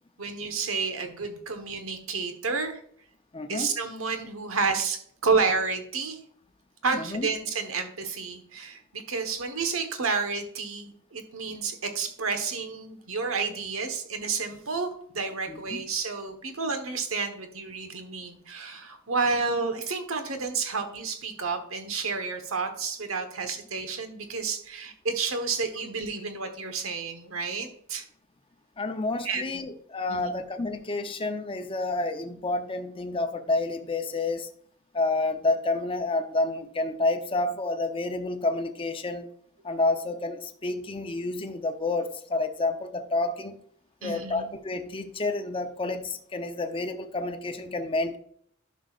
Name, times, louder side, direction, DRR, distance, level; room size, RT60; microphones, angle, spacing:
voice 1, 0.2-2.8 3.5-6.2 6.8-14.9 15.1-28.0 29.2-29.6 30.1-30.4 44.0-44.5, right 4 dB, 80° right, 7 dB, 1.3 m, -30 dB
voice 2, 3.3-3.7 6.9-7.3 15.5-15.9 28.8-34.5 34.9-39.3 39.6-43.6 44.0-48.2, left 2 dB, 25° left, 6 dB, 0.7 m, -29 dB
11.0 x 6.3 x 2.5 m, 0.63 s
head